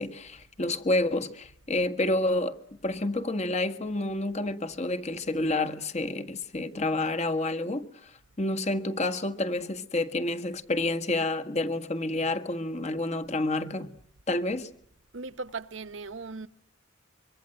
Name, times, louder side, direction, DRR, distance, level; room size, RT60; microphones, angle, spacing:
voice 1, 0.0-2.6 2.8-8.1 8.4-13.9 14.3-14.7, left 2 dB, 35° left, 1.6 m, -29 dB
voice 2, 15.1-16.5, right 4 dB, 75° right, 1.0 m, -38 dB
24.5 x 24.0 x 7.8 m
head